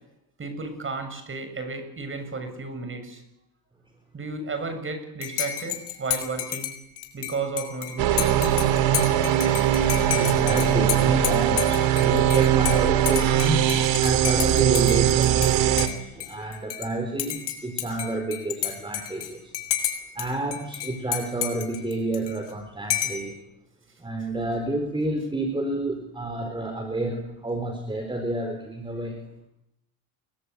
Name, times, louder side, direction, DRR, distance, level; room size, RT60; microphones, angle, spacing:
voice 1, 0.4-3.2 4.1-6.7 7.1-8.7, right 3 dB, 25° right, 7 dB, 7.5 m, -33 dB
Dishes pots and pans / Cutlery silverware / Chink clink, 5.2-15.5 15.8-16.9 17.2-20.3 20.5-22.5 22.9-23.3, left 11 dB, 55° left, 6.0 m, -31 dB
sound 1, 8.0-15.9, right 11 dB, 65° right, 3.0 m, -21 dB
voice 2, 10.1-13.7 14.0-19.5 20.1-23.3 24.0-29.2, right 1 dB, 10° right, 5 dB, 4.3 m, -29 dB
30.0 x 22.0 x 8.4 m, 0.85 s
cardioid pair, 120°, 48 cm